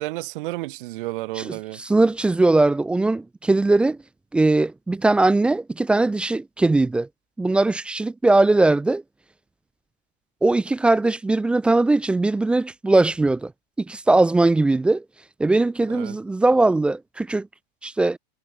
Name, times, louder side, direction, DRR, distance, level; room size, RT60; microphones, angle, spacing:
voice 1, 0.0-1.8 15.9-16.2, right 20 dB, 55° right, 3.3 m, -31 dB
voice 2, 1.8-4.0 4.3-7.1 7.4-9.0 10.4-13.5 13.8-15.0 15.4-17.5 17.8-18.2, right 2 dB, 5° right, 0.4 m, -20 dB
supercardioid pair, 170°, 31 cm